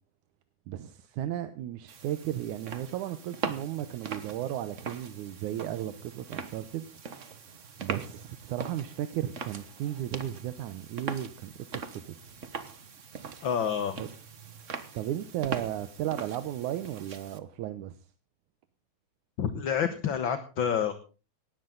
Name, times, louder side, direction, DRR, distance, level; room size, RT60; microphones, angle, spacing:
voice 1, 0.7-12.0 14.0-14.1 14.9-18.0, right 12 dB, 85° right, 11 dB, 2.4 m, -35 dB
sound 1, 1.9-17.4, right 5 dB, 60° right, 0.8 m, -41 dB
voice 2, 13.4-14.0 19.4-20.9, left 8 dB, 50° left, 9 dB, 1.6 m, -28 dB
18.5 x 13.5 x 3.9 m, 0.34 s
omnidirectional pair, 3.4 m